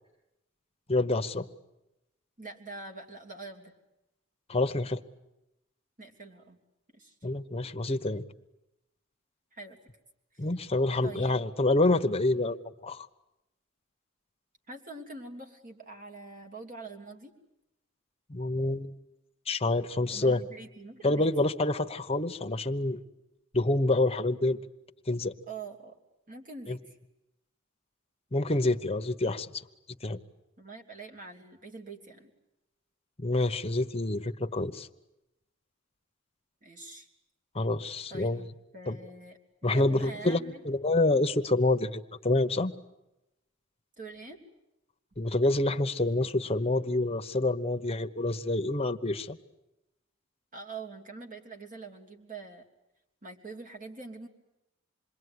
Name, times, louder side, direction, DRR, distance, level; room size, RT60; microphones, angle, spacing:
voice 1, 0.9-1.5 4.5-5.0 7.2-8.2 10.4-13.1 18.3-18.9 19.5-20.4 21.0-23.0 23.5-24.6 25.1-25.3 26.7-26.8 28.3-29.6 30.0-30.2 33.2-34.9 37.5-38.4 38.9-39.0 39.6-42.7 45.2-49.4, left 2 dB, 30° left, 8 dB, 1.1 m, -27 dB
voice 2, 2.4-3.7 6.0-6.6 6.9-7.1 9.5-9.8 11.0-11.3 14.7-17.3 20.1-21.5 25.5-26.0 26.3-27.0 30.6-32.3 36.6-37.1 38.1-40.8 44.0-44.4 50.5-52.6 53.2-54.3, right 3 dB, 40° right, 2 dB, 3.1 m, -44 dB
27.5 x 22.0 x 9.6 m, 0.93 s
head